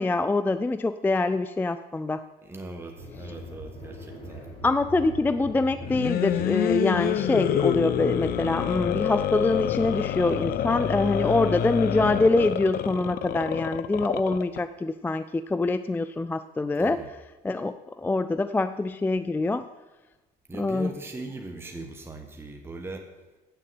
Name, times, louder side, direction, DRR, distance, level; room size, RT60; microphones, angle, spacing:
voice 1, 0.0-2.2 4.6-17.0 17.4-19.7 20.6-20.9, left 2 dB, 10° left, 12 dB, 0.3 m, -25 dB
voice 2, 2.4-4.5 16.8-17.1 20.5-23.1, right 2 dB, 15° right, 3 dB, 1.1 m, -39 dB
sound 1, 3.0-9.5, equal, 35° left, 3.5 m, -41 dB
sound 2, 5.8-14.6, left 10 dB, 65° left, 0.6 m, -27 dB
8.6 x 6.6 x 7.7 m, 1.1 s
cardioid pair, 110°, 17 cm